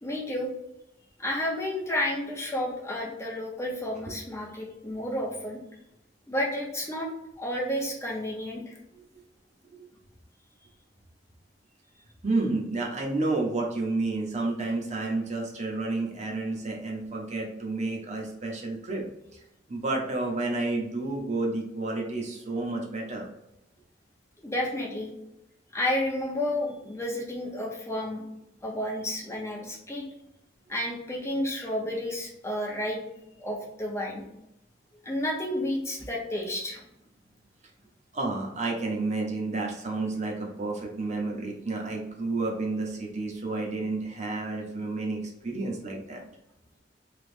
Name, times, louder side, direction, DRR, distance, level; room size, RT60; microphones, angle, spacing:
voice 1, 0.0-0.5 1.2-5.6 6.3-7.1 7.4-8.7 24.4-25.1 25.7-28.2 28.6-30.1 30.7-33.0 33.4-34.2 35.0-36.8, left 1 dB, 15° left, -2 dB, 0.7 m, -31 dB
voice 2, 12.2-19.0 19.7-23.3 38.1-46.2, right 2 dB, 40° right, 0 dB, 0.7 m, -30 dB
3.3 x 3.0 x 2.5 m, 0.84 s
head